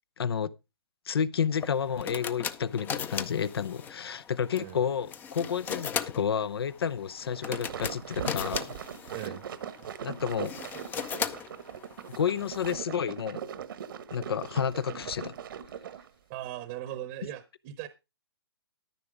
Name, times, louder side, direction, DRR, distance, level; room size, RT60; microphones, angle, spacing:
voice 1, 0.2-0.5 1.1-8.7 10.0-10.5 12.1-13.4 14.1-15.3, left 7 dB, 70° left, 0.7 m, -30 dB
sound 1, 1.5-12.7, left 7 dB, 15° left, 0.5 m, -38 dB
sound 2, 7.2-16.1, right 8 dB, 60° right, 1.1 m, -40 dB
voice 2, 9.1-9.4 16.3-17.9, right 13 dB, 30° right, 0.9 m, -39 dB
13.5 x 5.9 x 4.9 m
hypercardioid pair, 140°, 13 cm